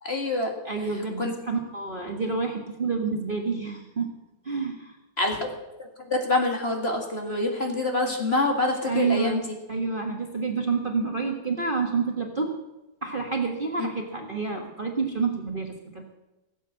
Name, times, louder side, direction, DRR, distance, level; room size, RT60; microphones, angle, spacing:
voice 1, 0.0-0.6 1.2-1.4 5.2-5.5 5.8-9.6 13.8-13.9, left 2 dB, 35° left, 2 dB, 2.2 m, -26 dB
voice 2, 0.6-4.1 4.4-4.9 8.8-12.5 13.0-16.0, right 4 dB, 30° right, 2 dB, 1.4 m, -28 dB
17.0 x 8.3 x 7.5 m, 1.0 s
omnidirectional pair, 2.0 m